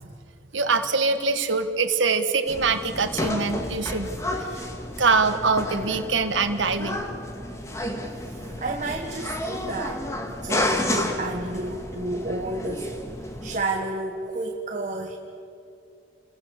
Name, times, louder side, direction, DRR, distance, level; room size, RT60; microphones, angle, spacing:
voice 1, 0.5-4.1 4.4-4.6 5.0-7.0, right 4 dB, 90° right, 7 dB, 1.5 m, -23 dB
sound 1, 2.5-13.6, left 1 dB, 15° left, 2.0 m, -31 dB
voice 2, 8.2-10.0 10.3-12.9 13.2-15.2, right 2 dB, 40° right, 2 dB, 1.5 m, -31 dB
30.0 x 22.0 x 7.3 m, 2.6 s
head